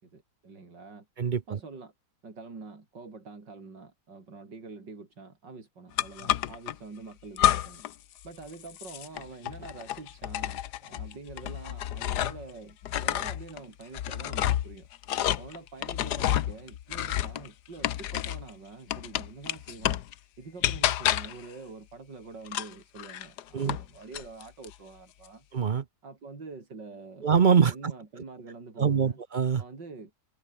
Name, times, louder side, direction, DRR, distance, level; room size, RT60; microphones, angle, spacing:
voice 1, 0.0-1.1 1.5-1.9 2.2-7.8 8.2-14.9 15.4-20.0 20.4-25.5 26.0-27.3 27.7-29.2 29.6-30.2, right 4 dB, 80° right, 4.6 m, -46 dB
voice 2, 1.2-1.6 23.5-23.8 25.5-25.8 27.2-27.7 28.8-29.6, right 6 dB, 55° right, 0.5 m, -23 dB
sound 1, 6.0-6.7 7.4-7.9 8.2-12.5 12.8-18.5 18.9-20.1 20.6-21.4 22.5-23.9 24.1-24.7, left 12 dB, 70° left, 1.4 m, -30 dB
omnidirectional pair, 1.9 m